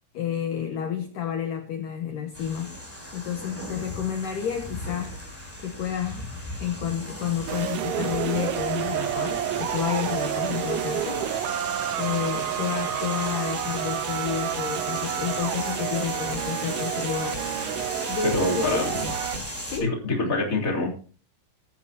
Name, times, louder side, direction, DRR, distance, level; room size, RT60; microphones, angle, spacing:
voice 1, 0.1-2.7 3.1-5.2 5.6-6.3 6.6-11.2 12.0-17.7 18.1-19.0 19.6-19.9, left 8 dB, 70° left, 5 dB, 2.1 m, -30 dB
sound 1, 2.3-19.8, equal, 5° right, 6.9 m, -37 dB
sound 2, 7.5-19.4, right 10 dB, 80° right, 3.4 m, -29 dB
voice 2, 18.2-19.1 19.3-19.4 19.8-20.9, left 2 dB, 20° left, 0 dB, 3.1 m, -26 dB
14.5 x 14.5 x 2.9 m, 0.40 s
omnidirectional pair, 5.4 m